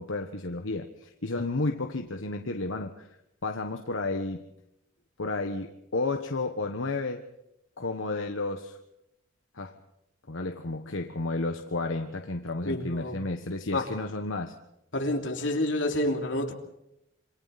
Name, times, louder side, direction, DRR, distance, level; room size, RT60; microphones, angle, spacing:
voice 1, 0.0-3.1 3.4-4.5 5.2-7.2 7.8-8.8 9.5-9.7 10.3-14.5, left 2 dB, 90° left, 5 dB, 1.3 m, -32 dB
voice 2, 12.6-13.2 13.7-13.9 14.9-16.5, left 1 dB, 70° left, 2 dB, 3.1 m, -28 dB
27.0 x 25.0 x 4.2 m, 0.83 s
head